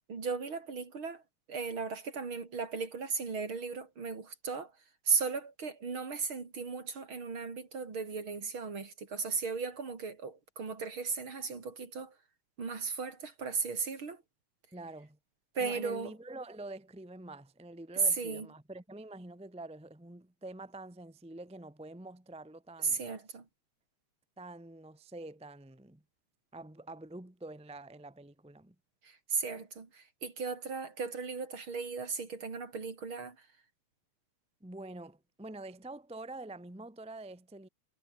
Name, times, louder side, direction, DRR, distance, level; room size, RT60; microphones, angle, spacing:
voice 1, 0.1-1.2 1.5-4.7 5.0-12.2 12.6-14.2 15.6-16.1 18.1-18.5 22.8-23.5 29.0-33.5, right 5 dB, 45° right, 4.1 m, -36 dB
voice 2, 14.7-15.2 15.6-23.0 24.4-26.0 26.5-28.7 34.6-37.7, right 2 dB, 5° right, 0.5 m, -46 dB
omnidirectional pair, 3.3 m